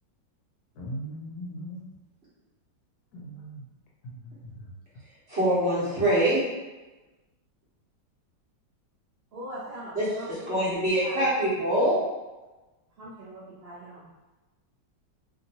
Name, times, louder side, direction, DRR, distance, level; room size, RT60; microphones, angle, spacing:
voice 1, 0.7-1.8 3.1-3.6 4.0-4.7, right 1 dB, 70° left, -4 dB, 1.0 m, -39 dB
voice 2, 5.3-6.4 9.9-10.1 10.5-12.0, right 1 dB, 45° right, -10 dB, 1.0 m, -24 dB
voice 3, 9.3-11.2 11.7-11.9 13.0-14.1, right 1 dB, 65° right, -9 dB, 0.5 m, -42 dB
2.9 x 2.8 x 2.7 m, 1.1 s
omnidirectional pair, 2.0 m